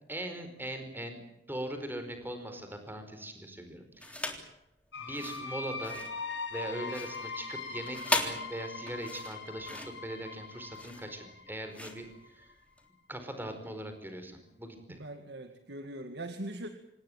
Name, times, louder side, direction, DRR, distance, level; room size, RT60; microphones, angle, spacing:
voice 1, 0.1-1.2 1.5-4.4 5.0-6.0 6.5-12.1 12.3-12.5 13.1-15.0, right 1 dB, 10° right, 7 dB, 4.7 m, -40 dB
sound 1, 4.0-4.5 5.0-12.9, left 2 dB, 5° left, 3.4 m, -38 dB
sound 2, 4.9-12.5, left 4 dB, 80° left, 6.5 m, -41 dB
voice 2, 14.9-16.7, right 1 dB, 65° right, 7 dB, 2.1 m, -41 dB
27.0 x 18.5 x 9.1 m, 0.88 s
head